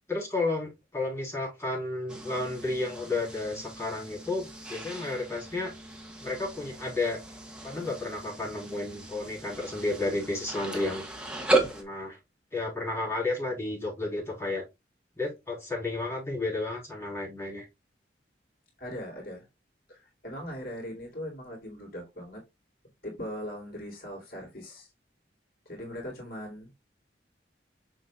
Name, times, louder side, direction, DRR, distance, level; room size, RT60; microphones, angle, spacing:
voice 1, 0.1-5.7 6.2-7.2 7.6-11.1 11.7-12.2 12.5-14.6 15.2-17.7, left 2 dB, 15° left, 3.9 m, -32 dB
sound 1, 2.1-11.8, right 2 dB, 5° right, 1.3 m, -35 dB
voice 2, 18.8-19.5 19.9-22.4 23.0-24.9 25.6-26.7, equal, 55° left, 2.8 m, -40 dB
6.6 x 6.2 x 2.4 m
head